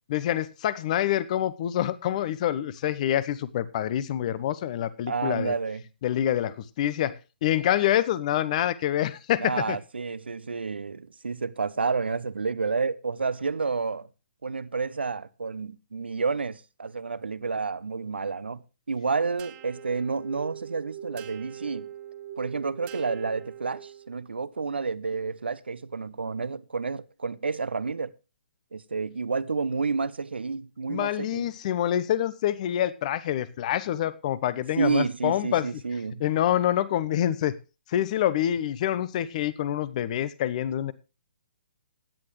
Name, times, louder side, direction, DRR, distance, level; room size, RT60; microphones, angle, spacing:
voice 1, 0.1-5.5 6.0-9.8 30.9-35.7 36.2-37.6 37.9-40.9, left 11 dB, 40° left, 1.1 m, -26 dB
voice 2, 5.1-5.8 9.4-14.1 14.4-18.6 18.9-21.9 22.4-28.1 28.7-31.5 34.8-36.2, right 4 dB, 80° right, 0.8 m, -30 dB
sound 1, 19.4-24.2, right 10 dB, 25° right, 1.6 m, -42 dB
16.5 x 9.8 x 3.2 m
figure-of-eight pair, 135°, 6 cm